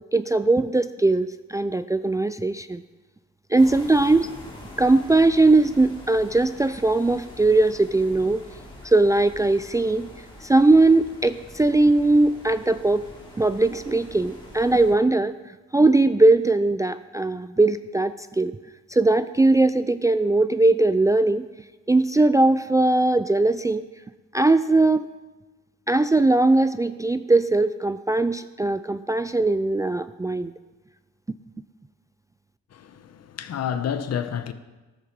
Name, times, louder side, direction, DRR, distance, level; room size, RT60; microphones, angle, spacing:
voice 1, 0.1-2.8 3.5-4.3 4.8-8.4 8.8-10.1 10.4-13.0 13.4-18.6 18.9-21.5 21.9-23.8 24.3-25.0 25.9-30.5, right 2 dB, 10° right, 0.4 m, -20 dB
sound 1, 3.6-14.9, left 1 dB, 15° left, 3.5 m, -44 dB
voice 2, 32.7-34.5, left 8 dB, 55° left, 1.0 m, -29 dB
14.0 x 12.0 x 4.7 m
cardioid pair, 90°, 30 cm